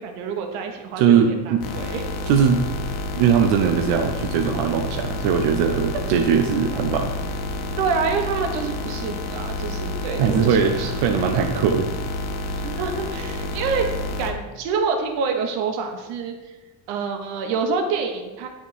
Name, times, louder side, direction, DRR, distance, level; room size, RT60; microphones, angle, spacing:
voice 1, 0.0-2.0 7.8-11.1 12.6-13.9 14.2-16.3 16.9-18.5, right 5 dB, 80° right, 4 dB, 1.2 m, -27 dB
voice 2, 1.0-1.6 2.3-2.6 3.1-7.1 10.2-11.9, right 7 dB, 60° right, 4 dB, 0.8 m, -20 dB
sound 1, 1.6-14.3, left 2 dB, 85° left, 1.1 m, -29 dB
8.5 x 3.7 x 4.7 m, 1.2 s
supercardioid pair, 100°, 46 cm